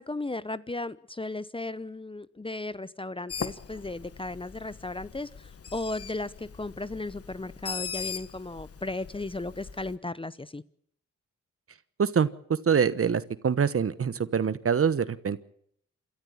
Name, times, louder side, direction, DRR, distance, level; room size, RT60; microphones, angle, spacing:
voice 1, 0.0-10.6, left 2 dB, 20° left, 18 dB, 0.8 m, -35 dB
Bird, 3.3-10.0, left 6 dB, 50° left, 1.5 m, -40 dB
voice 2, 12.0-15.4, right 6 dB, 50° right, 16 dB, 1.2 m, -25 dB
27.0 x 13.5 x 7.1 m, 0.69 s
supercardioid pair, 50°, 30 cm